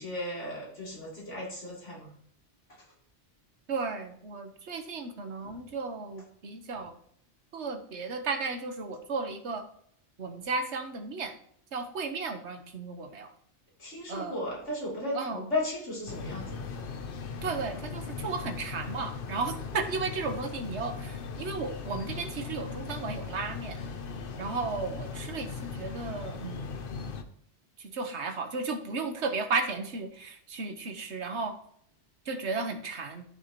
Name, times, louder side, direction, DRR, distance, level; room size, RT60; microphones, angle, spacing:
voice 1, 0.0-2.1 5.4-5.6 13.8-16.7, left 1 dB, 80° left, -5 dB, 3.5 m, -35 dB
voice 2, 3.7-6.9 7.5-9.6 10.2-11.3 11.7-13.3 14.1-14.3 15.1-15.5 17.4-23.8 24.4-26.7 27.8-31.5 32.3-33.2, right 4 dB, 70° right, 7 dB, 1.4 m, -34 dB
sound 1, 16.1-27.2, left 5 dB, 55° left, 0.9 m, -38 dB
13.0 x 6.1 x 3.0 m, 0.66 s
omnidirectional pair, 1.2 m